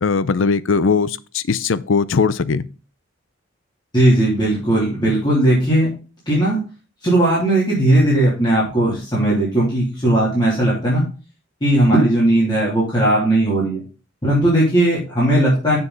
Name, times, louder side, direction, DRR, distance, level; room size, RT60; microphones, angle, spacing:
voice 1, 0.0-2.6, left 5 dB, 70° left, 0.5 m, -19 dB
voice 2, 3.9-5.9 6.3-6.6 7.0-11.0 11.6-13.8 14.2-15.8, right 1 dB, 20° left, 3.1 m, -17 dB
7.0 x 6.7 x 3.9 m
head